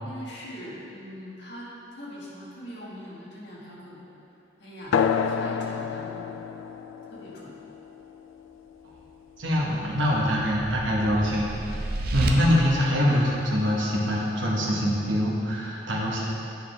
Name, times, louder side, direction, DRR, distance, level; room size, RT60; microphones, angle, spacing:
voice 1, 0.0-4.0 4.6-6.4 7.1-7.5 9.6-9.8, equal, 60° left, -7 dB, 1.7 m, -42 dB
sound 1, 4.9-10.0, left 7 dB, 85° left, 0.3 m, -30 dB
voice 2, 9.4-11.6 12.1-16.2, equal, 75° right, -4 dB, 1.2 m, -24 dB
sound 2, 9.5-12.3, right 2 dB, 50° right, 0.5 m, -32 dB
9.7 x 4.8 x 3.4 m, 2.9 s
head